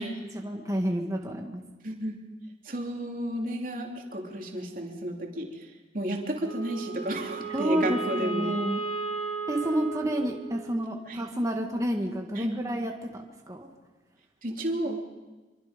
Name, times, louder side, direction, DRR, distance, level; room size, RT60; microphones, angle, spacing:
voice 1, 0.3-1.6 7.5-8.8 9.5-13.7, equal, 20° right, 2 dB, 1.9 m, -30 dB
voice 2, 1.8-2.2 2.6-5.7 5.9-8.5 11.1-11.2 12.4-12.6 14.4-15.0, right 1 dB, 50° right, 1 dB, 3.2 m, -32 dB
Wind instrument woodwind instrument, 6.4-10.8, right 4 dB, 30° left, 3.0 m, -35 dB
26.0 x 24.0 x 5.3 m, 1.2 s
head